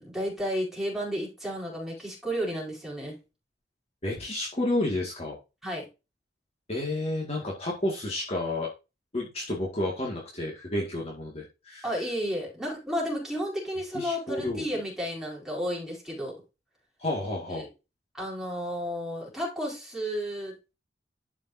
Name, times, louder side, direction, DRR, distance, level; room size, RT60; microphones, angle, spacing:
voice 1, 0.0-3.2 5.6-5.9 11.8-16.3 17.6-17.7 18.2-20.7, equal, ahead, -4 dB, 4.6 m, -32 dB
voice 2, 4.0-5.4 6.7-8.7 9.1-12.0 13.9-14.7 17.0-17.7, left 1 dB, 35° left, -2 dB, 2.0 m, -31 dB
12.0 x 5.2 x 2.7 m, 0.27 s
head